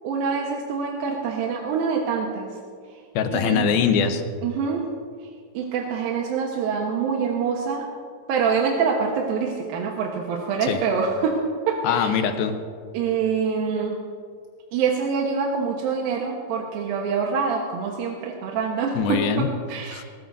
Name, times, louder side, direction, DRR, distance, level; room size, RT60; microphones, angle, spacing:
voice 1, 0.0-2.5 3.3-3.7 4.4-4.9 5.5-7.8 8.3-11.4 11.7-12.2 12.9-14.0 14.7-20.0, right 5 dB, 80° right, -1 dB, 3.0 m, -25 dB
voice 2, 3.2-4.2 10.7-10.8 11.8-12.6 19.0-19.5 19.9-20.0, left 7 dB, 90° left, 7 dB, 2.9 m, -22 dB
21.5 x 18.5 x 2.7 m, 2.1 s
omnidirectional pair, 4.1 m